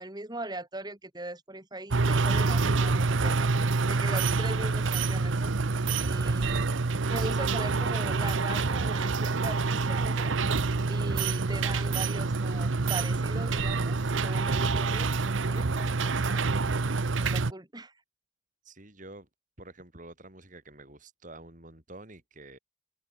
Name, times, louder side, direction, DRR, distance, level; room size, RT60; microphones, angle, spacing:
voice 1, 0.0-5.5 6.0-6.7 7.1-10.3 10.9-16.5 17.2-17.9, right 2 dB, 20° right, 2.7 m, -40 dB
sound 1, 1.9-17.5, right 3 dB, 85° right, 0.9 m, -27 dB
voice 2, 6.2-6.6 18.6-19.3 19.6-22.6, right 2 dB, 40° right, 5.5 m, -49 dB
head